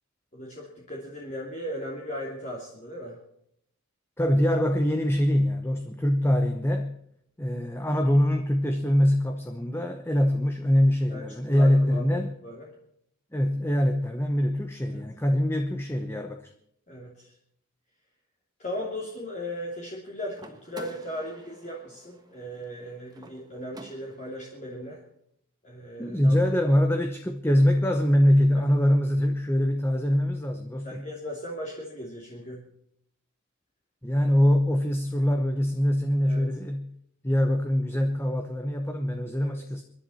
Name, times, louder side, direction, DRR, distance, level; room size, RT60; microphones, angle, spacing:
voice 1, 0.3-3.2 11.1-12.7 14.9-15.0 16.9-17.3 18.6-25.0 25.6-26.4 30.8-32.6 36.2-36.5 39.4-39.5, equal, 35° left, -3 dB, 2.9 m, -37 dB
voice 2, 4.2-6.9 7.4-12.3 13.3-16.5 26.0-31.1 34.0-36.9 37.2-39.8, equal, 10° left, 6 dB, 0.9 m, -23 dB
sound 1, 20.3-24.4, right 1 dB, 20° right, 1.5 m, -48 dB
26.0 x 11.0 x 4.3 m, 0.71 s
head